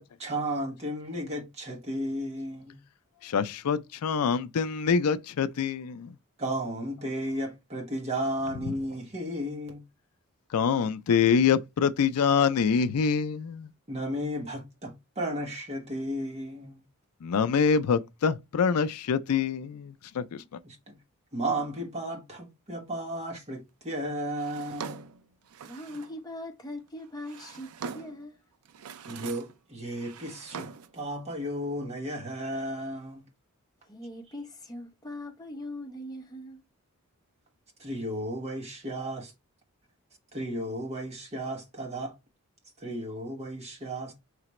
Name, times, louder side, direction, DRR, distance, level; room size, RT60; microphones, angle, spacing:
voice 1, 0.0-2.8 6.4-9.8 13.9-16.8 20.6-21.0 21.3-25.0 29.1-33.2 37.8-39.3 40.3-42.1 42.8-44.1, right 1 dB, 30° right, 1.1 m, -34 dB
voice 2, 3.2-6.2 8.6-8.7 10.5-13.7 17.2-20.6, left 6 dB, 80° left, 0.4 m, -25 dB
Drawer open or close, 24.4-26.2 27.0-28.3 28.7-29.6 29.9-31.0, right 6 dB, 70° right, 0.4 m, -42 dB
voice 3, 25.6-28.5 33.8-36.6, left 1 dB, 15° left, 0.8 m, -41 dB
4.9 x 3.3 x 3.0 m
head